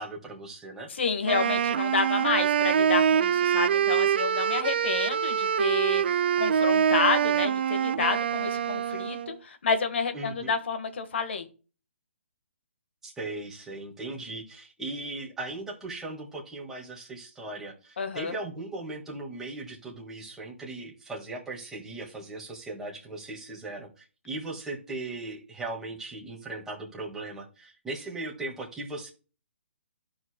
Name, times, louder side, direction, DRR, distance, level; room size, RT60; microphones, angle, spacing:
voice 1, 0.0-0.9 10.1-10.5 13.0-29.1, right 2 dB, 5° right, -2 dB, 1.8 m, -38 dB
voice 2, 0.9-6.0 6.4-11.5 18.0-18.3, left 5 dB, 65° left, 8 dB, 1.5 m, -29 dB
Wind instrument woodwind instrument, 1.3-9.4, right 8 dB, 55° right, 0.4 m, -25 dB
14.0 x 4.9 x 2.2 m, 0.34 s
hypercardioid pair, 150°, 7 cm